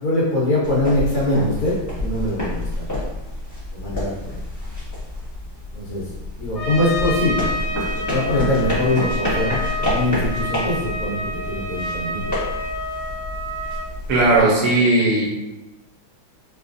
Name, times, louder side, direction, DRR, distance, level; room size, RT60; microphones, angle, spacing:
voice 1, 0.0-2.9 3.7-4.4 5.7-6.1 6.4-7.5 8.0-12.3, left 1 dB, 75° left, -7 dB, 1.8 m, -23 dB
sound 1, 0.6-14.4, left 1 dB, 15° left, 0.7 m, -29 dB
Trumpet, 6.5-13.9, left 1 dB, 40° left, 1.7 m, -29 dB
voice 2, 14.1-15.2, right 2 dB, 80° right, -5 dB, 1.9 m, -16 dB
5.2 x 2.4 x 2.5 m, 0.98 s
omnidirectional pair, 2.4 m